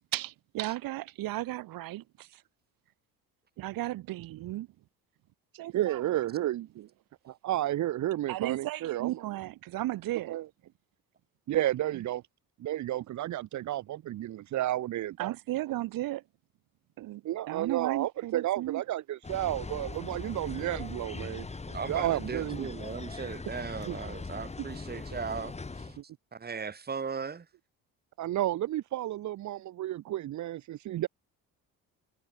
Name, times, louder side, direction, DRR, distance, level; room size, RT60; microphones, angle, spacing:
voice 1, 0.1-2.4 3.6-4.7 5.5-6.2 8.3-10.4 15.2-16.2 17.0-18.8, right 16 dB, 70° right, 2.1 m, -35 dB
voice 2, 5.7-6.9 7.2-9.1 10.3-10.4 11.5-12.2 12.6-15.3 17.2-21.5 21.9-22.7 23.9-24.0 26.0-26.1 28.2-31.1, right 14 dB, 55° right, 0.9 m, -32 dB
sound 1, 19.2-26.0, left 3 dB, 20° left, 4.1 m, -40 dB
voice 3, 21.7-25.9 26.3-27.5, right 5 dB, 25° right, 3.1 m, -37 dB
cardioid pair, 115°, 35 cm